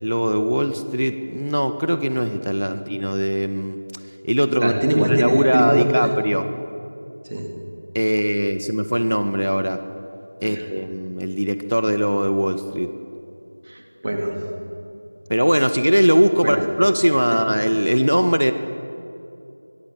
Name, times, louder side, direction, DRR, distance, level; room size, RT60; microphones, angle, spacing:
voice 1, 0.0-3.8 4.2-4.7 5.1-6.4 7.9-9.8 10.4-12.9 15.3-18.5, equal, 85° right, 9 dB, 1.6 m, -20 dB
voice 2, 4.6-6.1 7.3-7.5 10.4-10.6 13.7-14.4 16.4-16.6 17.3-17.4, right 1 dB, 30° right, 2 dB, 2.8 m, -22 dB
25.5 x 23.0 x 7.8 m, 2.8 s
figure-of-eight pair, 175°, 0 cm